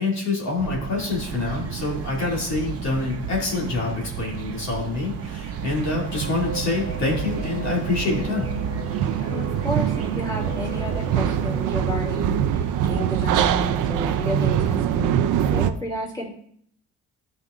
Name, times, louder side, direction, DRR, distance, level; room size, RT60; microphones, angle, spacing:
voice 1, 0.0-8.5, left 3 dB, 65° left, -3 dB, 2.4 m, -26 dB
sound 1, 0.6-15.7, right 10 dB, 90° right, 0.5 m, -26 dB
sound 2, 1.0-14.5, right 5 dB, 50° right, 0.9 m, -40 dB
Race car auto racing / Accelerating revving vroom, 5.3-12.6, left 2 dB, 45° left, 2.5 m, -39 dB
voice 2, 9.2-16.3, equal, 15° left, -3 dB, 2.9 m, -31 dB
13.5 x 5.2 x 2.5 m, 0.65 s
cardioid pair, 90°, 30 cm